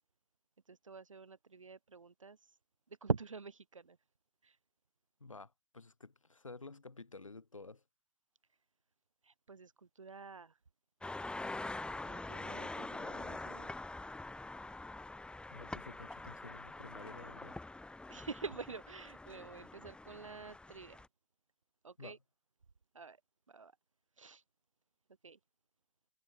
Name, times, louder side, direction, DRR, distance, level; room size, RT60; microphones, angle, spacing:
voice 1, 0.7-2.6 3.0-4.0 4.4-4.6 9.2-10.6 12.0-13.7 18.1-21.0 21.8-22.2 22.9-23.2 23.5-23.7 24.2-24.4 25.2-25.4, right 4 dB, 80° right, 7.1 m, -45 dB
voice 2, 5.2-7.8 15.5-17.6 22.0-22.2, left 3 dB, 85° left, 4.3 m, -51 dB
sound 1, 11.0-21.1, left 2 dB, 5° left, 2.8 m, -45 dB
figure-of-eight pair, 105°, 16 cm